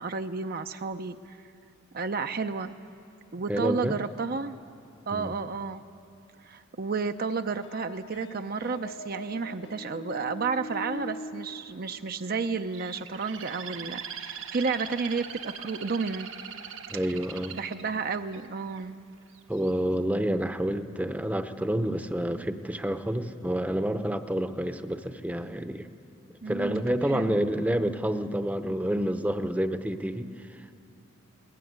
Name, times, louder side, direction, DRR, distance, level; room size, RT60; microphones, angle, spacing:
voice 1, 0.0-1.4 1.9-2.8 3.3-4.6 5.1-5.9 6.4-16.3 17.5-19.0 26.4-26.8 27.1-27.4, right 4 dB, 50° right, 8 dB, 0.6 m, -32 dB
voice 2, 3.5-4.0 5.1-5.3 16.9-17.6 19.5-25.9 26.5-30.7, right 1 dB, 10° right, 9 dB, 0.7 m, -29 dB
sound 1, 7.6-12.8, left 1 dB, 65° left, 1.1 m, -42 dB
Bird, 12.7-18.8 19.3-19.7, right 7 dB, 75° right, 1.3 m, -41 dB
20.5 x 20.0 x 9.5 m, 2.6 s
head